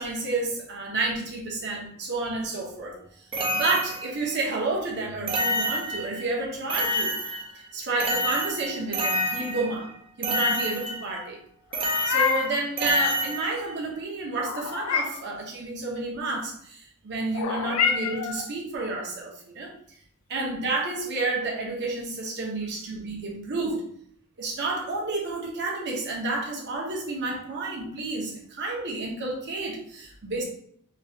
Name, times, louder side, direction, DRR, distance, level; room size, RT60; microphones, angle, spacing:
voice 1, 0.0-3.0 3.5-7.2 7.7-9.9 10.2-11.4 12.0-19.7 20.3-23.9 24.4-30.4, right 2 dB, 55° right, -1 dB, 0.8 m, -30 dB
sound 1, 3.3-4.3 5.3-6.3 6.7-7.7 8.0-9.9 10.2-11.2 11.7-13.8, equal, 25° right, 0.4 m, -28 dB
Meow, 11.7-12.6 14.4-15.3 17.3-18.5, left 6 dB, 85° left, 0.3 m, -27 dB
3.0 x 2.3 x 2.7 m, 0.64 s
head